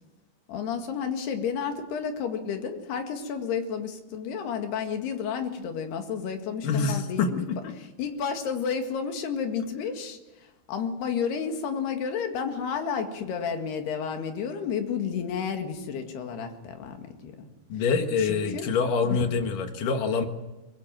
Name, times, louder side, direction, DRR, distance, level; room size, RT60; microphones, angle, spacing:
voice 1, 0.5-7.5 8.0-10.2 10.7-17.5 18.2-18.7 19.0-19.4, left 6 dB, 85° left, 5 dB, 4.0 m, -31 dB
voice 2, 6.6-7.7 17.7-20.3, left 5 dB, 60° left, 6 dB, 3.1 m, -26 dB
23.0 x 21.5 x 7.5 m, 1.1 s
omnidirectional pair, 4.5 m